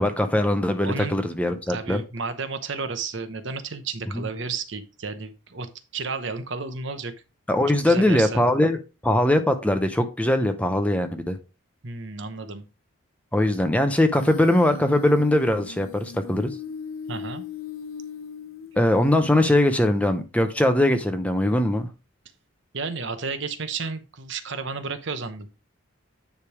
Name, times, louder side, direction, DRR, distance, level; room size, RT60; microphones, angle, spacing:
voice 1, 0.0-2.0 4.1-4.3 7.5-11.4 13.3-16.5 18.8-21.9, left 1 dB, 5° left, 0.6 m, -21 dB
voice 2, 0.8-1.2 1.7-7.1 7.7-8.4 11.8-12.7 17.1-17.5 22.7-25.5, right 4 dB, 60° right, 0.9 m, -32 dB
Human voice, 14.1-19.1, left 5 dB, 75° left, 0.7 m, -38 dB
9.8 x 3.4 x 4.8 m
head